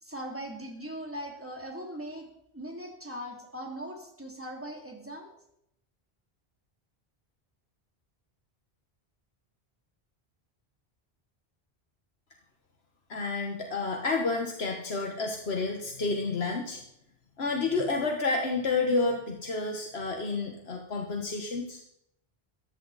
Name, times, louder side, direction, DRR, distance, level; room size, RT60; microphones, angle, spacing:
voice 1, 0.0-5.3, equal, 10° right, 0 dB, 2.9 m, -40 dB
voice 2, 13.1-16.8 17.4-21.8, left 3 dB, 85° left, 3 dB, 1.7 m, -30 dB
18.0 x 14.0 x 4.1 m, 0.77 s
omnidirectional pair, 1.0 m